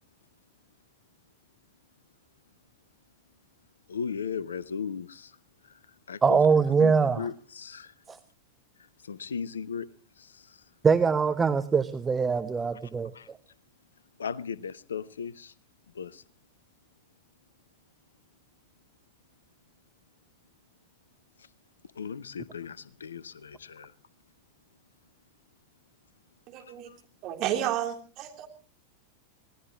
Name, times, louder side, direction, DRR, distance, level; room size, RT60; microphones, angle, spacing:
voice 1, 3.9-5.4 5.6-6.4 6.8-7.9 9.0-9.9 10.2-10.7 13.1-13.3 14.2-15.5 15.9-16.2 21.4-21.5 21.9-23.9 26.6-27.0, left 6 dB, 70° left, 0.7 m, -37 dB
voice 2, 6.2-7.2 8.1-8.2 10.8-13.1, right 5 dB, 15° right, 0.9 m, -23 dB
voice 3, 26.5-26.9 27.2-28.5, right 11 dB, 40° right, 3.5 m, -31 dB
25.0 x 18.0 x 3.1 m
figure-of-eight pair, 90°, 0 cm